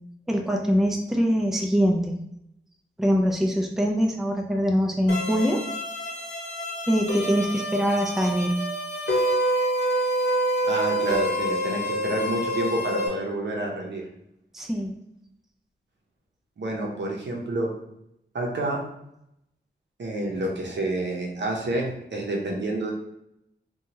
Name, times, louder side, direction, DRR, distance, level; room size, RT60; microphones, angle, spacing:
voice 1, 0.3-2.2 3.0-5.6 6.9-8.5 14.5-14.9, equal, ahead, 2 dB, 0.4 m, -23 dB
sound 1, 5.1-13.1, equal, 65° left, 0.9 m, -27 dB
voice 2, 10.6-14.1 16.6-17.7 18.3-18.8 20.0-22.9, right 1 dB, 70° right, -1 dB, 0.7 m, -28 dB
2.8 x 2.3 x 2.9 m, 0.81 s
cardioid pair, 55°, 19 cm